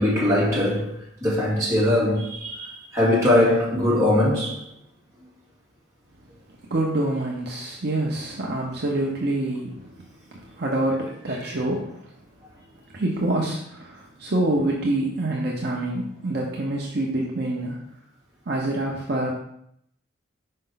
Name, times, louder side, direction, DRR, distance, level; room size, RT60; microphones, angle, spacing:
voice 1, 0.0-4.6 11.4-11.5, left 1 dB, 15° right, 2.4 m, -21 dB
voice 2, 6.7-12.1 12.9-17.8 18.5-19.3, right 1 dB, 55° right, 0.8 m, -26 dB
5.4 x 5.1 x 3.9 m
head